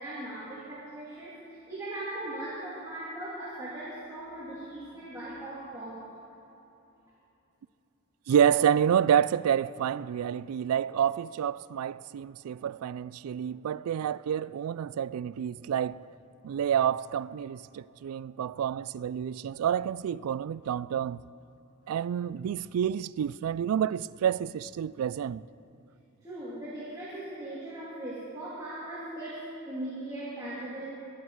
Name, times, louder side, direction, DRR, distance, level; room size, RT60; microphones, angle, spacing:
voice 1, 0.0-6.0 26.2-30.9, right 1 dB, 15° right, 2.6 m, -39 dB
voice 2, 8.3-16.1 16.4-21.2 21.9-25.5, right 9 dB, 75° right, 0.3 m, -28 dB
23.0 x 10.0 x 4.7 m
head